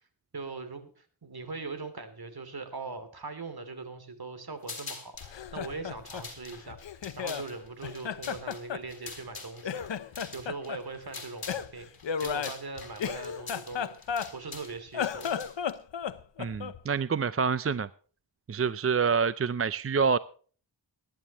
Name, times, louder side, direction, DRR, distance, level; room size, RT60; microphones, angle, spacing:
voice 1, 0.3-5.2 5.5-6.8 7.2-9.9 10.3-11.9 12.2-15.4, right 3 dB, 60° right, 9 dB, 2.8 m, -40 dB
sound 1, 4.6-5.3 5.9-11.7 11.9-15.7, left 4 dB, 55° left, 3.5 m, -44 dB
Laughter, 5.2-7.5 7.8-9.4 9.6-10.8 11.5-14.6 14.9-16.8, left 8 dB, 85° left, 0.8 m, -34 dB
voice 2, 16.4-17.9 18.5-20.2, right 5 dB, 35° right, 16 dB, 0.5 m, -27 dB
21.5 x 10.5 x 3.0 m, 0.42 s
wide cardioid pair, 100°, 43 cm